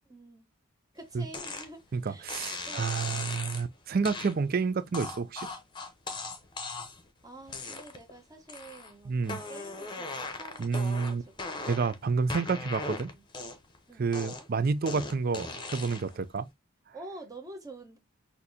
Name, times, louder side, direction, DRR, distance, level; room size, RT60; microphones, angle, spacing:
voice 1, 0.1-0.5 0.9-2.4 2.6-3.3 7.2-9.1 9.5-12.0 13.0-13.2 13.9-14.1 16.9-18.0, right 1 dB, 15° right, 1.0 m, -48 dB
sound 1, 1.3-1.7 2.3-3.6 4.0-4.3 4.9-7.1 7.5-8.1 8.5-8.9 9.2-12.0 12.3-13.8 14.1-16.2, left 3 dB, 20° left, 0.8 m, -38 dB
voice 2, 1.9-5.5 9.1-9.4 10.6-11.2 11.7-13.1 14.0-16.5, right 4 dB, 45° right, 0.4 m, -29 dB
6.2 x 2.7 x 2.7 m
head